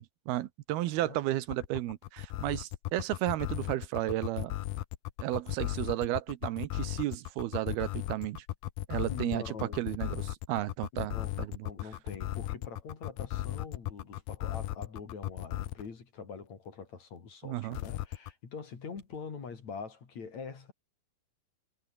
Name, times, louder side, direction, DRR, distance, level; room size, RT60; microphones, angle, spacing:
voice 1, 0.0-4.5 5.2-8.5 8.9-11.7 17.4-17.8, right 15 dB, 80° right, 2.9 m, -33 dB
voice 2, 0.8-1.2 9.1-9.9 11.1-11.4 11.6-20.7, left 5 dB, 45° left, 4.5 m, -44 dB
sound 1, 1.5-15.9 17.7-18.3, left 16 dB, 75° left, 2.8 m, -36 dB
omnidirectional pair, 4.5 m